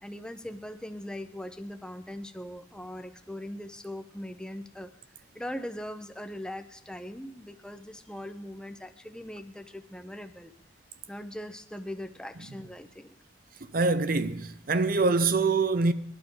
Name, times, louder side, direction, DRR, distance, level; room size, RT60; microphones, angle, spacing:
voice 1, 0.0-4.9 5.3-10.5 11.1-13.1, left 1 dB, 5° left, 0.7 m, -40 dB
voice 2, 13.7-15.9, right 3 dB, 50° right, 0.7 m, -24 dB
21.0 x 12.0 x 3.9 m
head